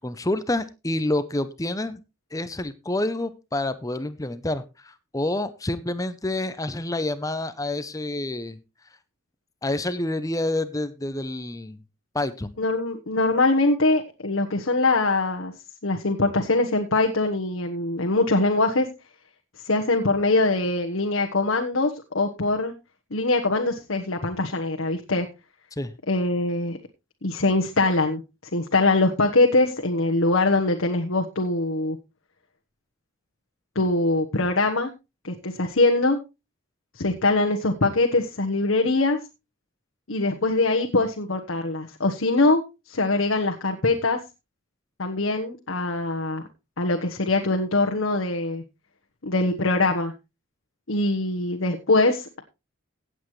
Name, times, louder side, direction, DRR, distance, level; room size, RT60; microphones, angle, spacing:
voice 1, 0.0-2.0 2.3-8.6 9.6-11.8 12.1-12.5 25.7-25.9, left 1 dB, 15° left, 13 dB, 0.7 m, -28 dB
voice 2, 12.6-15.5 15.8-18.9 19.6-22.7 23.1-25.3 26.1-26.8 27.2-28.2 28.5-32.0 33.7-34.9 35.2-36.2 36.9-39.2 40.1-42.6 42.9-44.2 45.0-46.4 46.8-48.6 49.2-50.1 50.9-52.4, left 2 dB, 75° left, 3 dB, 1.2 m, -23 dB
16.5 x 8.2 x 3.2 m, 0.26 s
head